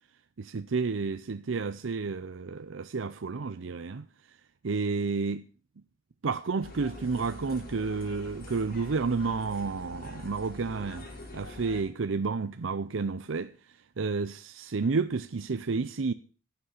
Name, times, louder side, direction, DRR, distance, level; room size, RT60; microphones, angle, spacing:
voice 1, 0.4-4.0 4.6-5.4 6.2-11.1 11.3-13.5 14.0-16.1, right 4 dB, 80° right, 0.6 m, -31 dB
sound 1, 6.6-11.8, left 1 dB, 50° left, 4.4 m, -44 dB
17.0 x 8.0 x 6.6 m
head